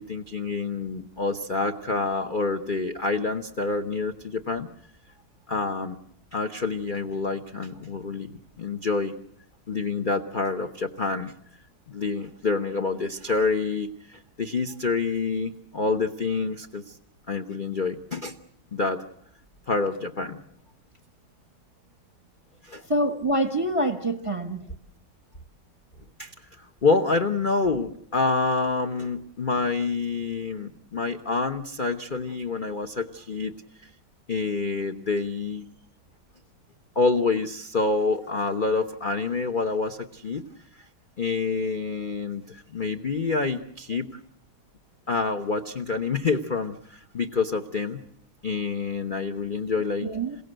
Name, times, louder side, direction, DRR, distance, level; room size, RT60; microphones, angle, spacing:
voice 1, 0.0-4.7 5.5-6.0 6.3-9.1 9.7-11.3 11.9-16.8 17.3-18.3 18.7-19.0 19.7-20.4 22.6-22.8 26.2-26.3 26.8-33.5 34.3-35.6 37.0-40.4 41.2-44.1 45.1-48.0 48.4-50.1, left 4 dB, 45° left, 6 dB, 0.6 m, -27 dB
voice 2, 22.9-24.6 50.0-50.4, right 1 dB, 20° right, 6 dB, 1.0 m, -25 dB
28.0 x 17.0 x 7.9 m, 0.72 s
omnidirectional pair, 2.3 m